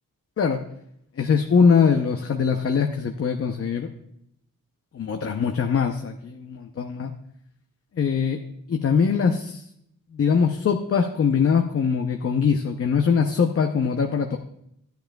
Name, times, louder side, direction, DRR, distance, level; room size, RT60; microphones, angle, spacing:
voice 1, 1.2-3.9 4.9-7.1 7.9-8.4 8.7-9.6 10.1-14.4, left 6 dB, 45° left, 4 dB, 0.6 m, -22 dB
14.0 x 10.5 x 2.3 m, 0.75 s
wide cardioid pair, 155°, 34 cm